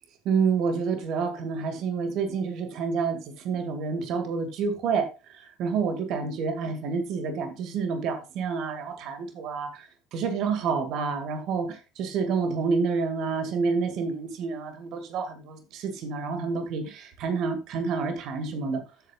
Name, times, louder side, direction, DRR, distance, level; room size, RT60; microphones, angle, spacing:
voice 1, 0.3-18.8, right 5 dB, 50° right, 8 dB, 2.1 m, -29 dB
14.0 x 8.1 x 2.4 m, 0.28 s
figure-of-eight pair, 65°, 0 cm